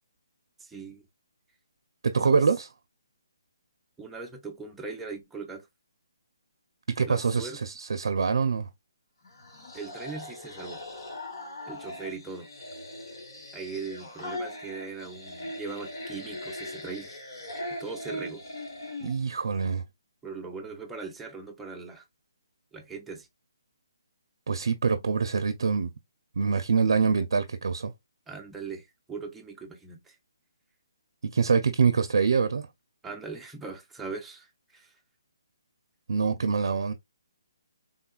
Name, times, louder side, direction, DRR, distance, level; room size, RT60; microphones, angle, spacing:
voice 1, 0.6-1.0 2.2-2.4 4.0-5.7 7.0-7.6 9.7-10.8 11.7-12.5 13.5-17.1 17.8-18.4 20.2-22.0 22.7-23.3 28.3-30.2 33.0-34.9, right 4 dB, 5° right, 0.5 m, -40 dB
voice 2, 2.0-2.7 6.9-8.7 19.0-19.8 24.5-25.9 26.4-27.9 31.2-32.7 36.1-36.9, right 5 dB, 70° right, 0.4 m, -25 dB
sound 1, 9.2-19.2, left 1 dB, 65° left, 1.3 m, -40 dB
3.6 x 2.2 x 2.4 m
hypercardioid pair, 160°, 2 cm